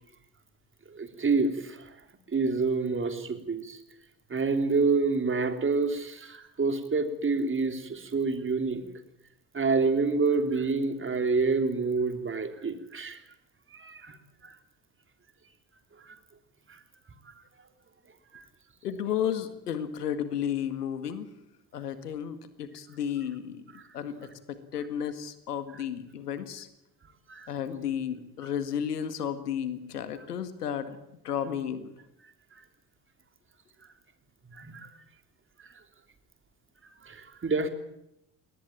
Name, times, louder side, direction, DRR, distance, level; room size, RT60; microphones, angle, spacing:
voice 1, 0.9-1.9 2.3-3.8 4.3-8.8 9.5-13.2 13.7-14.2 14.4-14.6 16.1-16.2 16.7-16.8 17.3-17.4 18.3-18.5 27.3-27.5 34.5-34.9 37.0-37.7, right 4 dB, 25° right, 7 dB, 3.4 m, -28 dB
voice 2, 18.8-21.3 21.7-26.7 27.5-31.0 31.2-31.9, left 9 dB, 80° left, 11 dB, 2.0 m, -33 dB
21.5 x 19.0 x 8.9 m, 0.82 s
figure-of-eight pair, 60°, 46 cm